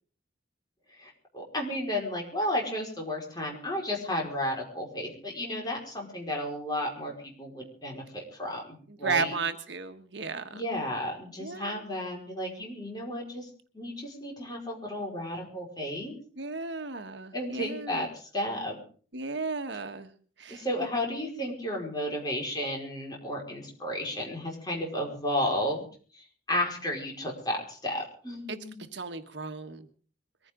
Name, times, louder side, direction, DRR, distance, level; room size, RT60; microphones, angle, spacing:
voice 1, 1.0-9.3 10.5-13.5 13.7-16.2 17.3-18.8 20.5-25.9 26.1-28.8, left 1 dB, 20° left, 0 dB, 4.9 m, -33 dB
voice 2, 8.9-10.6 11.4-11.8 16.4-18.1 19.1-20.1 20.4-20.6 28.5-28.6 28.9-29.9, right 4 dB, 70° right, 8 dB, 1.4 m, -34 dB
22.5 x 15.0 x 3.8 m, 0.43 s
head